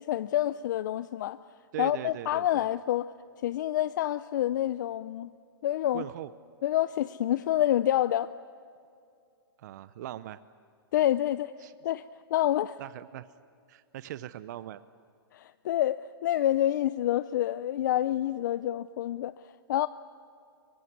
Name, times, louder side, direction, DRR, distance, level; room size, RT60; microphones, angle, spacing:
voice 1, 0.0-1.4 1.8-3.1 3.4-5.3 5.6-6.0 6.6-8.3 10.9-11.5 11.8-12.0 12.3-12.8 15.3-19.3 19.7-19.9, left 13 dB, 50° left, 0.5 m, -27 dB
voice 2, 1.7-2.7 5.9-6.3 9.6-10.4 11.6-11.7 12.8-13.2 13.7-14.8, right 13 dB, 45° right, 0.7 m, -40 dB
23.5 x 23.0 x 9.5 m
hypercardioid pair, 160°, 13 cm